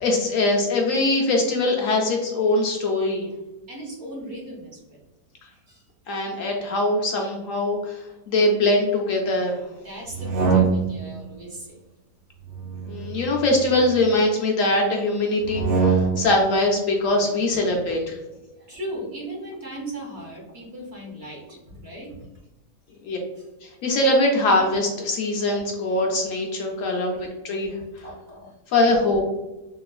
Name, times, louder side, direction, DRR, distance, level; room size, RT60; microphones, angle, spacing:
voice 1, 0.0-3.3 6.1-8.0 8.3-9.6 12.9-18.2 23.0-23.2 23.8-27.7 28.7-29.2, left 2 dB, 70° left, 1 dB, 0.8 m, -22 dB
voice 2, 3.7-5.0 5.5-5.8 9.8-11.8 15.6-16.2 17.1-17.9 18.3-22.1 23.4-23.5 27.7-28.5, right 1 dB, 45° right, -3 dB, 1.0 m, -38 dB
sound 1, 10.1-11.2 12.4-14.1 15.4-16.4, right 5 dB, 70° right, 0.7 m, -24 dB
3.7 x 2.3 x 2.3 m, 1.0 s
omnidirectional pair, 1.7 m